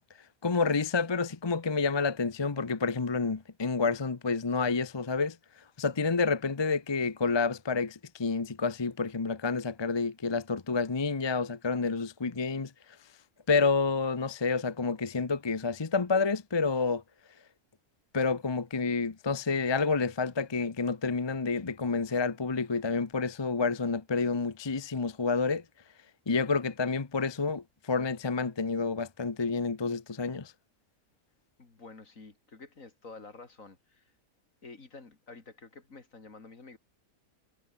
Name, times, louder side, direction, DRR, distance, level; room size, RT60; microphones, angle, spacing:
voice 1, 0.4-5.4 5.8-12.7 13.5-17.0 18.1-25.6 26.3-30.5, left 4 dB, 25° left, 0.7 m, -29 dB
voice 2, 31.6-34.1 34.6-36.8, left 3 dB, 60° left, 3.4 m, -49 dB
omnidirectional pair, 1.5 m